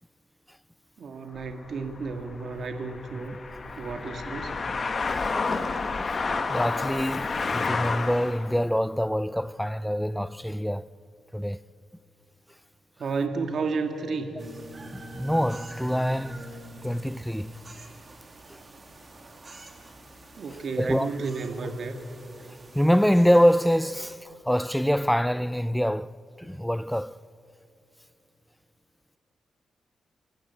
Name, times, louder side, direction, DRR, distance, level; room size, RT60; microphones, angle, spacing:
voice 1, 1.0-3.4 3.8-4.6 13.0-14.4 20.4-22.0, right 4 dB, 60° right, 1.8 m, -32 dB
sound 1, 1.4-8.5, left 4 dB, 40° left, 1.3 m, -30 dB
voice 2, 5.1-5.5 6.5-10.9 11.3-11.6 14.9-16.5 16.8-17.6 18.5-18.6 20.8-21.1 22.7-27.2, equal, ahead, 0.4 m, -25 dB
sound 2, 14.4-24.1, right 1 dB, 30° right, 2.6 m, -45 dB
27.5 x 16.0 x 8.2 m
cardioid pair, 100°, 0 cm